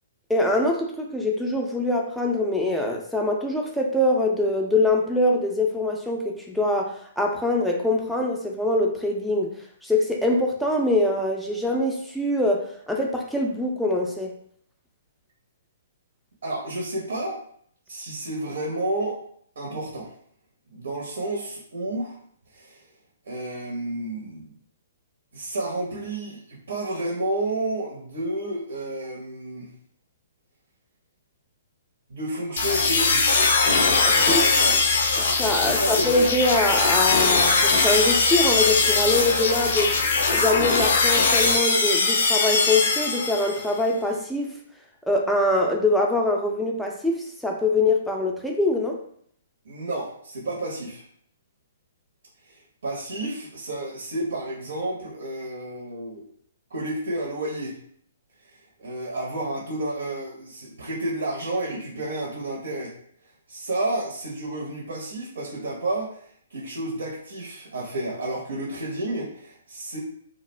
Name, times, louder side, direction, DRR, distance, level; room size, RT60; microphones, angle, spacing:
voice 1, 0.3-9.5 9.8-14.3 34.0-34.4 35.2-39.9 40.3-44.5 45.1-49.0, left 2 dB, ahead, 0 dB, 0.4 m, -24 dB
voice 2, 16.4-17.4 17.9-19.2 19.6-20.1 20.7-22.2 22.5-22.8 23.3-24.5 25.3-29.7 32.1-33.6 34.0-34.9 35.6-36.1 49.6-51.0 52.4-56.2 56.7-57.8 58.8-62.9 63.5-70.0, right 1 dB, 70° right, -3 dB, 0.7 m, -31 dB
sound 1, 32.6-43.7, left 4 dB, 60° left, 0.5 m, -21 dB
2.4 x 2.1 x 3.1 m, 0.63 s
hypercardioid pair, 125°, 0 cm